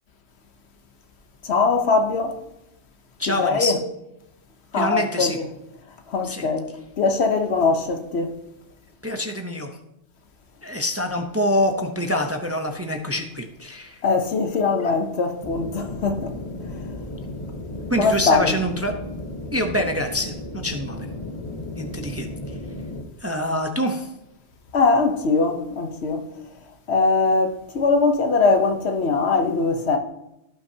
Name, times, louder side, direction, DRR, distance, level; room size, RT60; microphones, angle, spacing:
voice 1, 1.4-2.4 3.2-3.8 4.7-5.5 6.1-8.3 14.0-16.4 16.7-16.9 17.9-18.6 24.7-26.3 26.9-30.0, left 4 dB, 75° left, 1.2 m, -21 dB
voice 2, 3.2-3.7 4.7-5.4 6.2-6.5 9.0-9.7 10.6-14.0 14.8-14.9 17.9-18.9 19.5-21.1 21.8-22.6 23.2-24.1, left 1 dB, 15° right, 0.7 m, -26 dB
sound 1, 15.4-23.0, left 1 dB, 30° left, 1.0 m, -34 dB
16.0 x 6.0 x 2.8 m
omnidirectional pair, 1.1 m